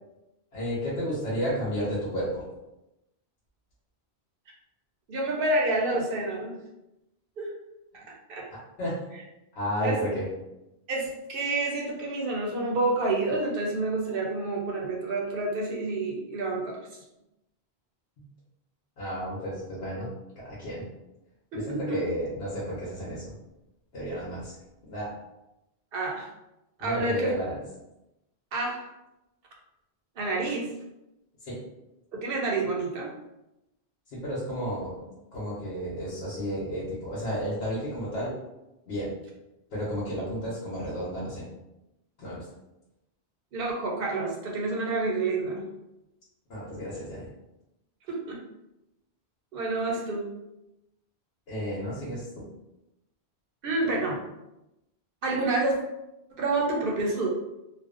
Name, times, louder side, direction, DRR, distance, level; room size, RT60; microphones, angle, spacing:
voice 1, 0.5-2.4 8.8-8.9 9.6-10.2 19.0-20.1 20.4-20.8 21.5-23.3 23.9-24.5 24.9-25.1 26.8-27.6 31.4-31.6 34.1-35.0 35.3-38.3 38.9-39.1 39.7-41.4 42.2-42.4 46.5-47.3 51.5-52.4, equal, 80° left, -7 dB, 1.0 m, -32 dB
voice 2, 5.1-6.6 7.4-7.5 8.3-8.5 9.1-9.2 9.8-10.0 10.9-16.8 21.5-22.0 25.9-26.3 26.8-27.3 28.5-28.8 30.2-30.7 32.1-33.1 43.5-45.6 48.1-48.4 49.5-50.3 53.6-54.2 55.2-55.7 56.4-57.3, right 2 dB, 65° right, -2 dB, 0.7 m, -28 dB
2.5 x 2.1 x 2.4 m, 0.91 s
omnidirectional pair, 1.1 m